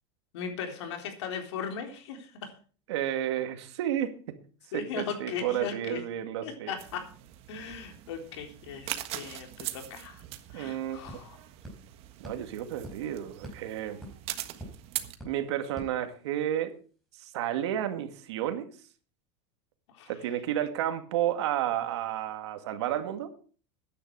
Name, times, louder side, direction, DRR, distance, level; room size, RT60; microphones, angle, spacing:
voice 1, 0.3-2.5 4.7-6.0 6.4-7.1 7.5-10.2 10.5-11.4 19.9-20.1, left 6 dB, 90° left, 4 dB, 3.8 m, -38 dB
voice 2, 2.9-4.1 4.7-6.7 10.5-11.0 12.2-14.0 15.2-16.7 17.2-18.7 20.1-23.3, right 11 dB, 85° right, 8 dB, 2.1 m, -31 dB
sound 1, 6.8-15.2, right 14 dB, 45° right, 1.4 m, -41 dB
sound 2, 10.6-16.7, right 1 dB, ahead, 5.2 m, -49 dB
14.0 x 10.0 x 4.7 m, 0.40 s
supercardioid pair, 155°, 14 cm